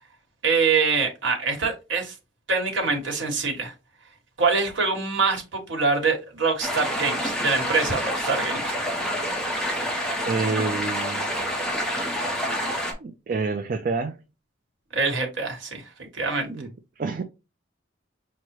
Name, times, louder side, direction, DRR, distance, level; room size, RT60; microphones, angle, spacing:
voice 1, 0.4-2.1 2.5-3.7 4.4-8.7 14.9-16.5, right 4 dB, 75° right, 1.2 m, -24 dB
sound 1, 6.6-12.9, equal, 5° left, 0.8 m, -28 dB
voice 2, 10.2-11.3 13.0-14.2 16.5-16.7 17.0-17.2, right 4 dB, 45° right, 0.3 m, -28 dB
6.0 x 2.1 x 3.1 m
head